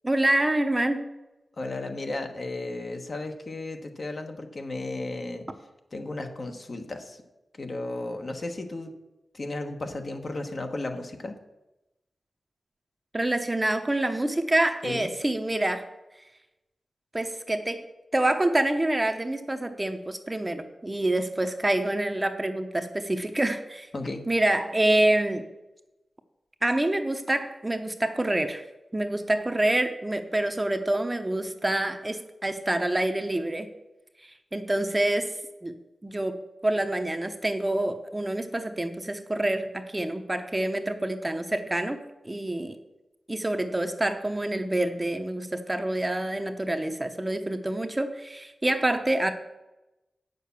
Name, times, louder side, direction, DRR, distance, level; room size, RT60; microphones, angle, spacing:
voice 1, 0.0-1.1 13.1-15.8 17.1-17.8 18.1-23.9 24.3-25.4 26.6-28.6 28.9-33.7 34.2-35.3 35.6-35.7 36.0-36.4 36.6-42.8 43.3-49.3, right 1 dB, 15° right, 7 dB, 0.8 m, -27 dB
voice 2, 1.6-5.5 5.9-7.2 7.6-8.9 9.3-11.3 14.8-15.1 23.9-24.3, left 2 dB, 45° left, 5 dB, 1.1 m, -34 dB
8.4 x 6.7 x 6.9 m, 0.99 s
wide cardioid pair, 105°, 0 cm